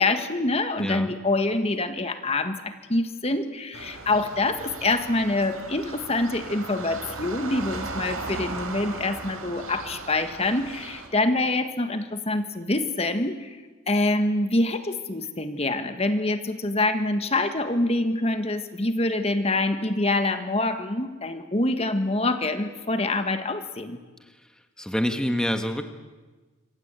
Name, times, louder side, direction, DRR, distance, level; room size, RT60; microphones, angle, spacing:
voice 1, 0.0-24.0, left 2 dB, 30° left, 8 dB, 1.5 m, -25 dB
voice 2, 0.8-1.1 24.2-24.5 24.8-25.9, equal, 5° left, 6 dB, 1.6 m, -27 dB
sound 1, 3.7-11.1, right 3 dB, 80° right, 4.6 m, -37 dB
27.0 x 25.0 x 8.2 m, 1.3 s
head